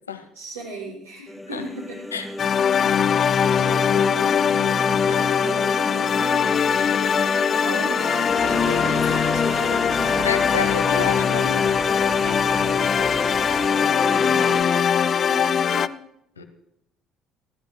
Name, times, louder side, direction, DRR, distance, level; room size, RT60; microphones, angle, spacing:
voice 1, 0.3-2.0 2.8-4.8 5.2-6.3 7.5-10.3 13.9-15.9, right 2 dB, 80° right, -6 dB, 7.4 m, -37 dB
sound 1, 1.3-14.6, left 1 dB, ahead, 0.9 m, -30 dB
sound 2, 2.4-15.9, left 8 dB, 40° left, 0.5 m, -21 dB
Cat, 8.3-13.7, right 4 dB, 55° right, 6.5 m, -41 dB
voice 2, 10.2-11.7 16.4-16.5, left 6 dB, 80° left, 8 dB, 1.1 m, -29 dB
29.0 x 13.0 x 2.3 m, 0.78 s
figure-of-eight pair, 55°, 0 cm